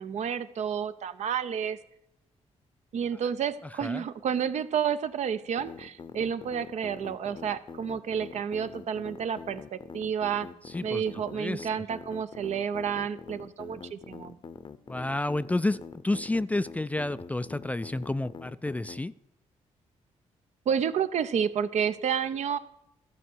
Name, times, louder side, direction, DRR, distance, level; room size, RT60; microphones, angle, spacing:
voice 1, 0.0-1.8 2.9-10.5 10.8-14.4 20.7-22.6, right 8 dB, 65° right, 12 dB, 0.6 m, -30 dB
sound 1, 5.6-19.0, left 5 dB, 40° left, 0.7 m, -44 dB
voice 2, 10.7-11.0 11.4-11.7 14.9-19.1, left 2 dB, 10° left, 15 dB, 0.3 m, -30 dB
13.0 x 4.6 x 7.8 m, 0.80 s
cardioid pair, 75°, 13 cm